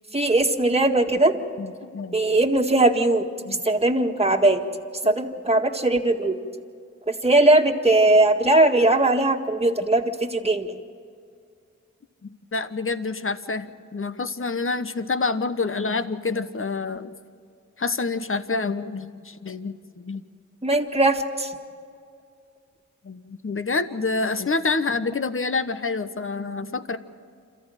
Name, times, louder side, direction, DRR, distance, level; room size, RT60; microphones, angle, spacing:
voice 1, 0.1-1.3 2.1-3.2 3.6-4.6 5.0-6.4 7.1-10.7 20.6-21.5, right 2 dB, 20° right, 3 dB, 1.9 m, -19 dB
voice 2, 1.6-2.2 3.5-3.6 12.2-13.7 13.9-17.1 17.8-20.2 23.0-27.0, left 3 dB, 45° left, 11 dB, 1.2 m, -27 dB
27.5 x 14.0 x 9.1 m, 2.3 s
cardioid pair, 55°, 30 cm